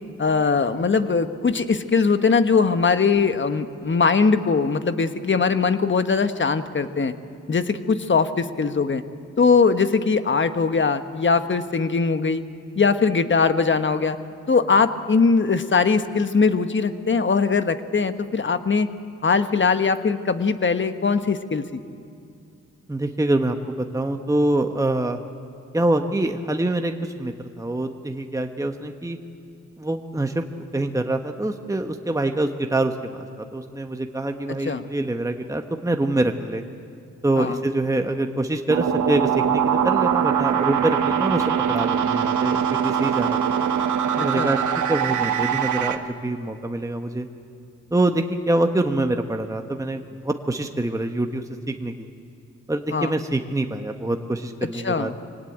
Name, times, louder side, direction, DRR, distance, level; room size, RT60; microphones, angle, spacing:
voice 1, 0.2-7.1 7.5-9.0 9.4-12.4 12.8-14.2 14.5-18.9 19.2-21.6 34.6-34.9 37.4-37.6 44.2-44.5 52.9-53.2 54.7-55.1, left 5 dB, 40° left, 10 dB, 1.3 m, -21 dB
voice 2, 22.9-25.2 25.7-29.2 29.8-30.4 30.7-36.6 37.2-43.7 44.2-44.6 44.9-47.3 47.9-52.1 52.7-55.2, right 2 dB, 10° right, 5 dB, 1.3 m, -25 dB
sound 1, 38.7-46.0, right 8 dB, 80° right, 1.2 m, -22 dB
24.0 x 18.5 x 8.8 m, 2.5 s
cardioid pair, 60°, 30 cm